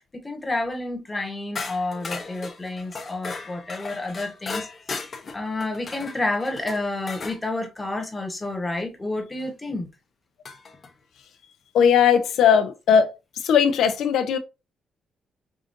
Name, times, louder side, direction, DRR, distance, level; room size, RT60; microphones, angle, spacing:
voice 1, 0.1-4.7 5.3-9.9, left 2 dB, 15° left, 1.1 m, -29 dB
sound 1, 1.5-7.4 9.4-9.5 10.4-10.9, left 4 dB, 40° left, 0.8 m, -36 dB
voice 2, 11.7-13.1 13.4-14.4, left 7 dB, 85° left, 0.7 m, -18 dB
4.9 x 2.5 x 2.6 m
cardioid pair, 120°, 0 cm